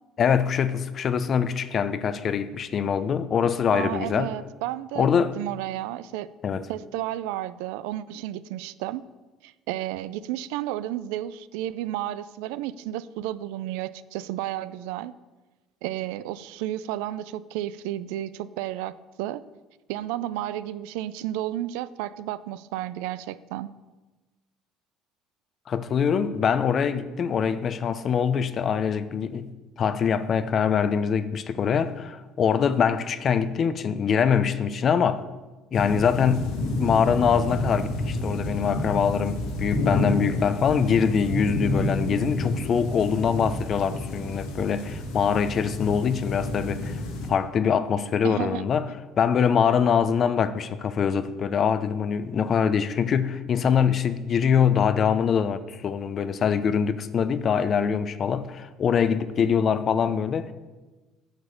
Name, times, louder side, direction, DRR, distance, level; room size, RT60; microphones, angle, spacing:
voice 1, 0.2-4.3 5.0-5.4 6.4-6.7 25.7-29.5 29.8-35.2 35.7-36.5 36.8-47.0 47.3-48.9 49.2-60.5, left 7 dB, 50° left, 0.6 m, -24 dB
voice 2, 3.7-6.3 6.7-9.0 9.4-15.1 15.8-19.4 19.9-23.7 48.2-48.7, right 13 dB, 80° right, 0.3 m, -32 dB
sound 1, 35.7-47.3, left 2 dB, 80° left, 1.4 m, -29 dB
8.8 x 4.9 x 6.6 m
supercardioid pair, 75°, 0 cm